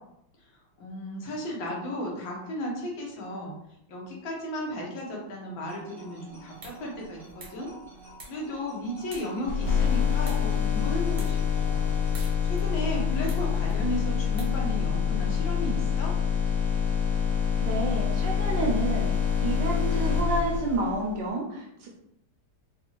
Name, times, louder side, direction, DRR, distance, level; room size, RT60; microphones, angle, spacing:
voice 1, 0.8-3.5 3.9-7.7 8.3-11.8 12.4-16.1, equal, 75° left, -2 dB, 1.7 m, -34 dB
sound 1, 5.7-12.3, right 2 dB, ahead, 0.5 m, -50 dB
sound 2, 6.3-15.1, equal, 35° right, 0.7 m, -50 dB
sound 3, 9.5-21.1, left 7 dB, 50° left, 1.6 m, -26 dB
voice 2, 17.6-19.1 19.4-21.9, right 2 dB, 70° right, -1 dB, 1.2 m, -29 dB
4.1 x 2.4 x 3.0 m, 0.79 s
omnidirectional pair, 2.2 m